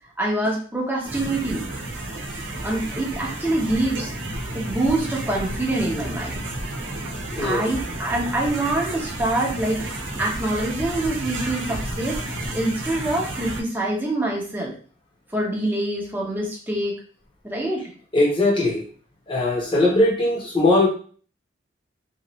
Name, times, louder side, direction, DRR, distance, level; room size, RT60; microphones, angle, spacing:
voice 1, 0.2-1.6 2.6-4.1 4.5-6.4 6.9-7.0 7.4-9.9 10.2-12.2 12.5-14.8 15.3-17.0 17.4-17.9, right 1 dB, 10° right, -3 dB, 0.7 m, -25 dB
sound 1, 1.0-13.6, right 1 dB, 85° right, 0.7 m, -31 dB
voice 2, 7.3-7.6 18.1-18.8 19.3-20.9, left 2 dB, 25° left, -2 dB, 0.9 m, -19 dB
2.9 x 2.5 x 3.0 m, 0.43 s
head